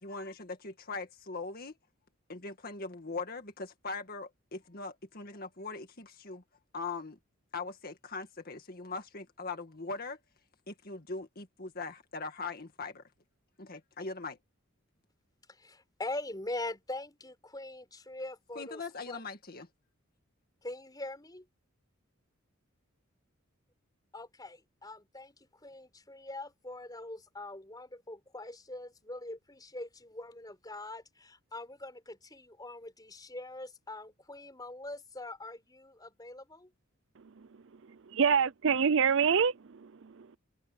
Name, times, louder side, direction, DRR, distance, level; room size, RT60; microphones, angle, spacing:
voice 1, 0.0-1.7 2.3-6.4 6.7-7.2 7.5-10.2 10.7-13.0 13.6-14.4 18.6-19.7, left 3 dB, 45° left, 2.0 m, -40 dB
voice 2, 15.5-19.2 20.6-21.5 24.1-25.3 25.6-36.7, left 2 dB, 20° left, 5.3 m, -43 dB
voice 3, 38.1-40.4, right 6 dB, 60° right, 0.5 m, -26 dB
open air
head